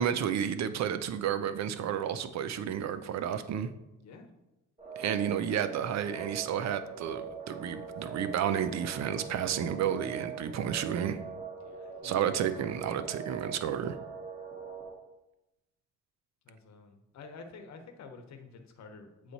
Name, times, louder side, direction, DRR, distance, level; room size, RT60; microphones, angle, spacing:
voice 1, 0.0-3.7 5.0-11.2 12.0-14.0, right 9 dB, 65° right, 11 dB, 0.5 m, -31 dB
sound 1, 4.8-14.9, right 6 dB, 25° right, 1.7 m, -42 dB
voice 2, 11.6-12.2 16.4-19.3, left 4 dB, 65° left, 5 dB, 1.0 m, -49 dB
8.2 x 3.1 x 4.1 m, 0.96 s
cardioid pair, 90°, 30 cm